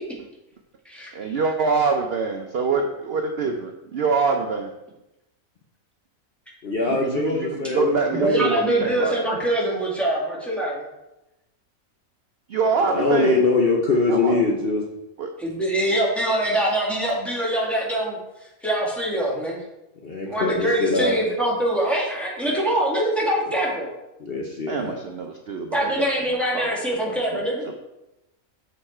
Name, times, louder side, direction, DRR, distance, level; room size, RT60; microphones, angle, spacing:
voice 1, 1.1-4.7 6.9-9.2 12.5-13.4 13.9-14.4 15.2-15.3 24.7-26.7 27.6-27.7, right 4 dB, 55° right, 4 dB, 0.7 m, -25 dB
voice 2, 6.6-8.5 12.9-14.8 20.0-21.1 24.2-25.0, left 3 dB, 45° left, -1 dB, 0.9 m, -22 dB
voice 3, 8.1-10.8 15.4-18.2 18.6-19.6 20.3-23.9 25.7-27.6, right 1 dB, ahead, -5 dB, 2.0 m, -24 dB
6.8 x 6.4 x 4.3 m, 0.93 s
omnidirectional pair, 1.5 m